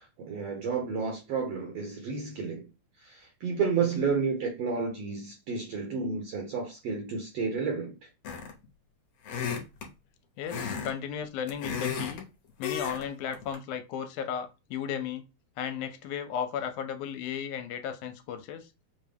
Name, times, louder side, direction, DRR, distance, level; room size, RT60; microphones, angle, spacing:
voice 1, 0.0-2.7 3.0-7.9, right 5 dB, 70° right, 1.6 m, -31 dB
sound 1, 8.2-8.7 9.2-9.9 10.5-10.9 11.2-12.2 12.6-13.0 13.3-13.6, left 7 dB, 65° left, 1.6 m, -34 dB
voice 2, 10.4-12.3 12.6-15.2 15.6-18.7, left 8 dB, 80° left, 2.0 m, -35 dB
5.2 x 2.2 x 3.4 m
omnidirectional pair, 3.6 m